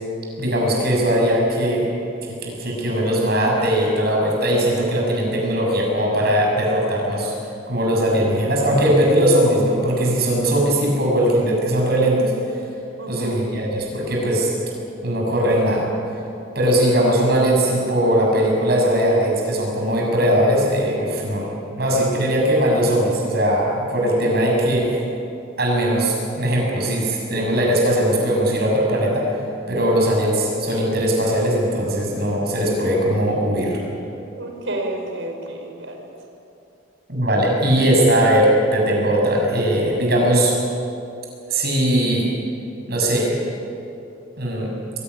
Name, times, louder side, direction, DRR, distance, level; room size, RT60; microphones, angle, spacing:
voice 1, 0.4-1.9 2.4-7.3 7.7-12.6 13.1-14.5 15.0-15.9 16.5-21.5 21.8-25.0 25.6-29.3 29.7-33.8 37.1-40.5 41.5-42.3 42.9-43.3 44.4-44.7, right 1 dB, 55° right, -1 dB, 7.3 m, -19 dB
voice 2, 13.0-13.6 34.4-36.0, right 1 dB, 70° right, 2 dB, 4.8 m, -30 dB
23.0 x 18.0 x 9.9 m, 2.8 s
head